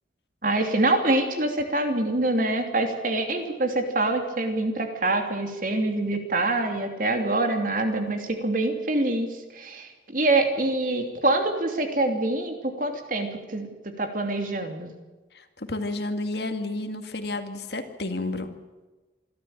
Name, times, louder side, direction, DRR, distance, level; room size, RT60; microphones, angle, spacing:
voice 1, 0.4-13.7 14.0-14.9, right 2 dB, 45° right, 5 dB, 2.9 m, -25 dB
voice 2, 15.3-18.5, left 2 dB, 60° left, 7 dB, 2.2 m, -31 dB
26.0 x 13.0 x 9.0 m, 1.2 s
head